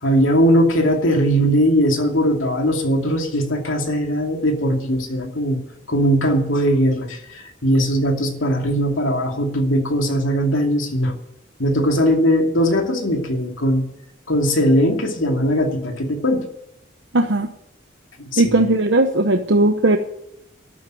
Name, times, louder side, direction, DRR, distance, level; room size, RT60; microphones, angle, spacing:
voice 1, 0.0-5.6 5.9-11.1 11.6-13.9 14.3-16.4 18.2-18.6, equal, 90° left, 3 dB, 2.6 m, -19 dB
voice 2, 17.1-17.5 18.4-20.0, right 2 dB, 70° right, 4 dB, 1.0 m, -17 dB
13.0 x 9.4 x 9.3 m, 0.80 s
head